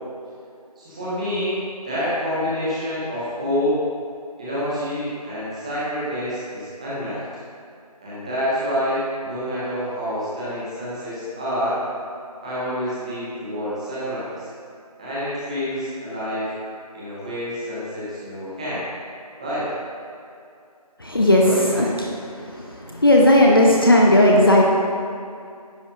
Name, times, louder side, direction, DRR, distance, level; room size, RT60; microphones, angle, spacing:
voice 1, 0.8-1.6 1.8-3.8 4.4-7.2 8.0-11.8 12.4-14.5 15.0-16.4 16.9-18.9 19.4-19.7 21.4-21.9, equal, 10° right, -11 dB, 1.1 m, -27 dB
voice 2, 21.0-21.5 21.7-21.9 23.0-24.6, left 1 dB, 35° left, -2 dB, 0.6 m, -14 dB
10.0 x 6.9 x 2.5 m, 2.5 s
figure-of-eight pair, 165°, 20 cm